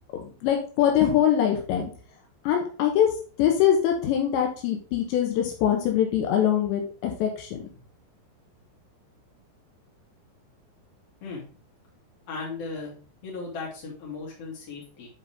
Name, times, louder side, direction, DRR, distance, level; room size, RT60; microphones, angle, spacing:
voice 1, 0.2-1.8 2.4-3.1 3.4-7.6, left 10 dB, 80° left, 2 dB, 3.3 m, -23 dB
voice 2, 12.3-12.9 13.2-15.1, left 4 dB, 40° left, -3 dB, 3.1 m, -36 dB
10.0 x 4.1 x 3.6 m, 0.38 s
omnidirectional pair, 5.1 m